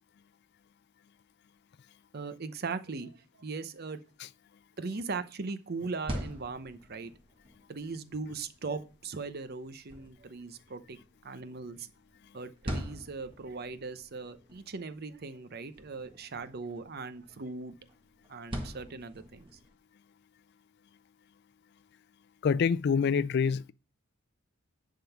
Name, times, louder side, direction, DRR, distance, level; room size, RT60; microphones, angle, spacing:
voice 1, 2.1-3.1 3.4-4.0 4.8-7.1 7.7-11.9 12.3-17.7 18.3-19.5, right 4 dB, 50° right, 0.7 m, -39 dB
sound 1, 5.8-19.7, equal, 25° right, 1.5 m, -45 dB
voice 2, 22.4-23.7, left 6 dB, 55° left, 0.3 m, -26 dB
10.5 x 3.8 x 5.8 m
head